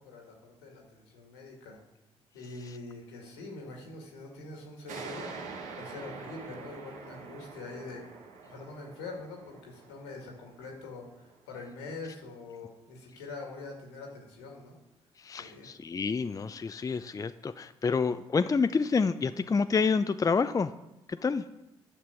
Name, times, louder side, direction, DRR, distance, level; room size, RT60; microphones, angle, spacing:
voice 1, 0.0-1.8 2.3-5.3 5.8-8.0 8.5-14.8 15.3-15.7, left 3 dB, 85° left, 1 dB, 2.0 m, -44 dB
sound 1, 4.9-12.0, right 4 dB, 70° right, 1.3 m, -46 dB
voice 2, 15.2-20.7 21.1-21.4, left 5 dB, 25° left, 11 dB, 0.5 m, -28 dB
10.0 x 6.0 x 7.1 m, 0.93 s
hypercardioid pair, 45°, 14 cm